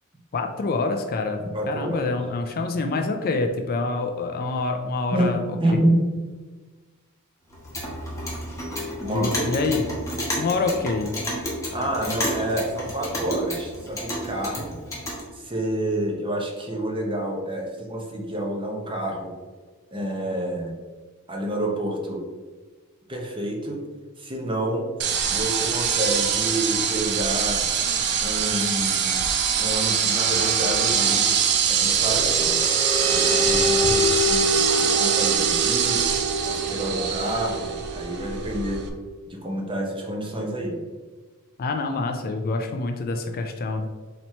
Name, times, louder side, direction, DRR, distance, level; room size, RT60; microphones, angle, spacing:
voice 1, 0.3-5.4 9.1-9.8 10.4-11.2 41.6-43.9, left 3 dB, 45° left, 5 dB, 0.4 m, -26 dB
voice 2, 1.5-2.1 5.1-6.0 9.0-9.5 11.7-14.7 15.3-19.3 19.9-20.7 21.3-22.2 23.1-23.8 24.2-24.9 25.3-27.6 28.2-29.2 29.6-31.3 31.7-32.6 33.0-36.0 36.4-38.8 39.3-40.8, right 1 dB, 25° right, 0 dB, 0.8 m, -28 dB
Clock, 7.5-15.2, equal, 15° left, 1.1 m, -31 dB
sound 1, 25.0-38.9, right 7 dB, 50° right, 0.5 m, -23 dB
sound 2, 31.9-38.9, equal, 90° right, 1.4 m, -27 dB
4.2 x 3.0 x 4.3 m, 1.4 s
head